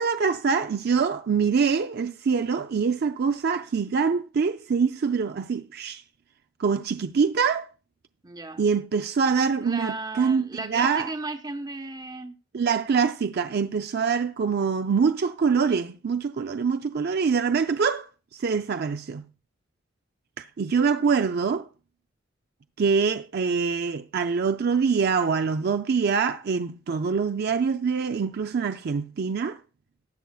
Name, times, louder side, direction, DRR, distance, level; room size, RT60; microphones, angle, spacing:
voice 1, 0.0-6.0 6.6-7.7 8.6-11.1 12.5-19.3 20.4-21.7 22.8-29.6, right 5 dB, 55° right, 0.4 m, -24 dB
voice 2, 8.2-8.6 9.6-12.4, right 2 dB, 20° right, 1.0 m, -35 dB
18.5 x 6.9 x 2.3 m
head